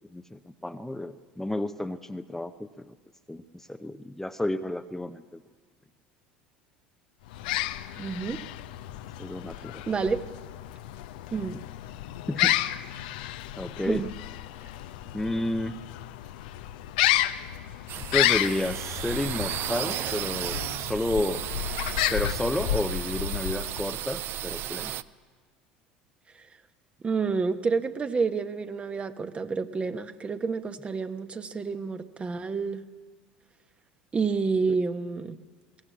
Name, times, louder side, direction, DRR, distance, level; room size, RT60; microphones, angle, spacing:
voice 1, 0.1-2.9 3.3-5.4 9.2-9.8 11.5-11.7 12.3-12.6 13.6-14.1 15.1-15.8 18.0-21.5 22.1-24.9 34.7-34.8, left 1 dB, 5° left, 7 dB, 0.8 m, -31 dB
sound 1, 7.3-24.0, left 13 dB, 65° left, 0.7 m, -31 dB
voice 2, 8.0-8.4 9.9-10.2 11.3-11.6 13.8-14.1 27.0-32.8 34.1-35.4, right 4 dB, 25° right, 9 dB, 1.2 m, -29 dB
sound 2, 17.9-25.0, right 12 dB, 50° right, 0.6 m, -34 dB
22.0 x 17.0 x 8.6 m, 1.5 s
figure-of-eight pair, 70°, 5 cm